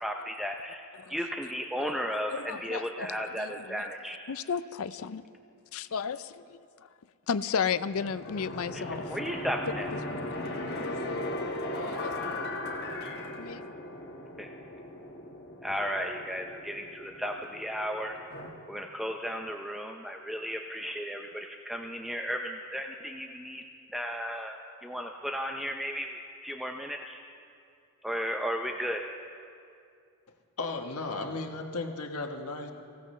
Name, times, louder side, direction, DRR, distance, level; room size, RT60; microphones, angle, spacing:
voice 1, 0.0-4.2 8.7-8.8 9.1-9.9 14.4-14.5 15.6-18.2 18.7-23.6 23.9-27.2 28.0-29.0, equal, ahead, 2 dB, 0.5 m, -34 dB
voice 2, 2.3-3.8 4.3-5.2 5.7-6.9 7.3-9.0 10.1-10.9 11.7-12.7 13.4-13.7, left 6 dB, 75° left, 14 dB, 0.5 m, -34 dB
sound 1, 7.9-18.5, left 1 dB, 45° left, 1.6 m, -38 dB
voice 3, 30.6-32.7, left 3 dB, 90° left, 3 dB, 1.3 m, -35 dB
24.5 x 16.5 x 3.2 m, 2.4 s
head